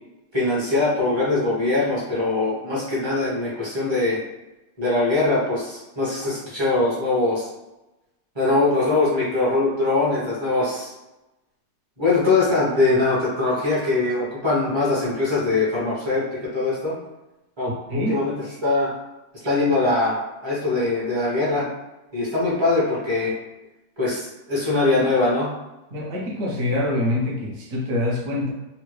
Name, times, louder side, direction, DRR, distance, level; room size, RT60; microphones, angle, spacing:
voice 1, 0.3-4.2 4.8-7.5 8.3-10.9 12.0-17.0 17.6-18.3 18.6-18.9 19.4-21.7 22.1-23.3 24.0-25.5, left 2 dB, 25° right, -8 dB, 0.6 m, -22 dB
voice 2, 25.9-28.5, left 1 dB, 55° right, -2 dB, 0.9 m, -25 dB
3.7 x 2.1 x 3.1 m, 1.0 s
omnidirectional pair, 2.0 m